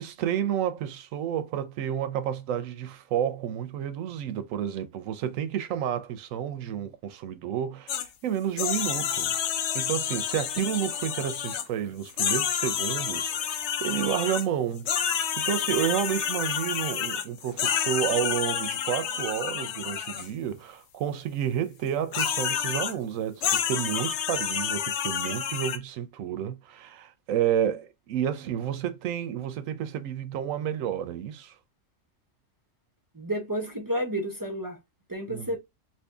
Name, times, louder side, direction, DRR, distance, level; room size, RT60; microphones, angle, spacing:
voice 1, 0.0-31.6 35.3-35.5, right 10 dB, 90° right, 1.0 m, -30 dB
sound 1, 7.9-8.1 8.6-11.7 12.1-14.5 14.9-20.3 22.1-22.9 23.4-25.8, left 8 dB, 65° left, 0.8 m, -29 dB
voice 2, 33.1-34.8 35.1-35.6, right 1 dB, 25° right, 0.5 m, -31 dB
2.8 x 2.7 x 3.3 m
omnidirectional pair, 1.3 m